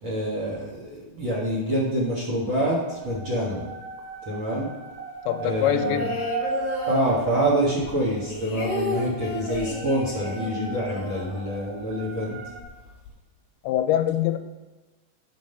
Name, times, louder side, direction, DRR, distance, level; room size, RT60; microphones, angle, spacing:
voice 1, 0.0-3.6 4.3-4.7 5.4-6.0 6.9-12.4, right 1 dB, 60° right, -7 dB, 1.2 m, -26 dB
sound 1, 2.8-8.4 9.3-12.6, right 4 dB, 80° right, 3.4 m, -36 dB
voice 2, 5.3-6.2 13.6-14.4, left 12 dB, 80° left, 8 dB, 2.4 m, -24 dB
sound 2, 5.5-7.7 8.0-11.9 12.2-12.3 12.6-13.1, left 2 dB, 60° left, 1.4 m, -33 dB
5.5 x 5.1 x 6.5 m, 1.2 s
omnidirectional pair, 4.8 m